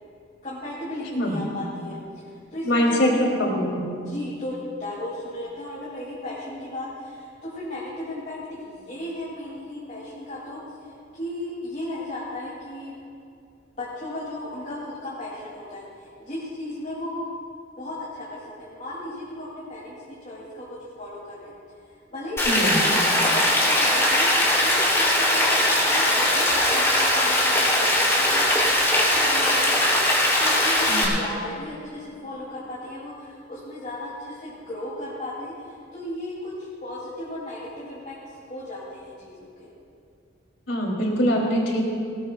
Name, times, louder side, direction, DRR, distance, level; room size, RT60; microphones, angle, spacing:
voice 1, 0.4-3.2 3.9-12.9 13.7-17.2 17.8-19.9 20.2-21.5 22.1-26.4 26.7-29.7 30.1-39.7, left 1 dB, 35° left, -8 dB, 3.0 m, -35 dB
voice 2, 2.6-3.9 22.5-22.8 30.9-31.1 40.7-41.9, equal, 70° left, -2 dB, 3.2 m, -23 dB
Rain, 22.4-31.0, left 1 dB, 15° left, 3.0 m, -20 dB
20.0 x 19.0 x 2.4 m, 2.4 s
head